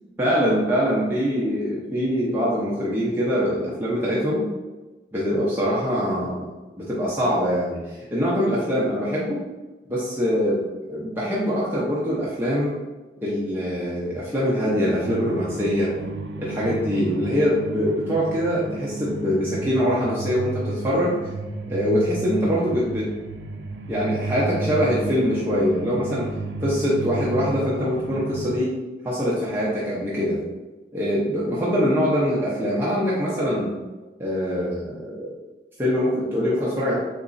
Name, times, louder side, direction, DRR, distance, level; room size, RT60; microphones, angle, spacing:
voice 1, 0.2-4.5 5.1-6.5 6.8-9.4 9.9-10.6 10.9-12.7 13.2-15.9 16.4-21.2 21.7-23.1 23.9-26.3 26.6-28.7 29.0-30.4 30.9-33.7 34.2-35.3 35.8-37.0, equal, 10° right, -7 dB, 0.5 m, -23 dB
sound 1, 15.0-28.6, right 2 dB, 80° right, 0.3 m, -32 dB
3.8 x 2.9 x 2.5 m, 1.2 s
head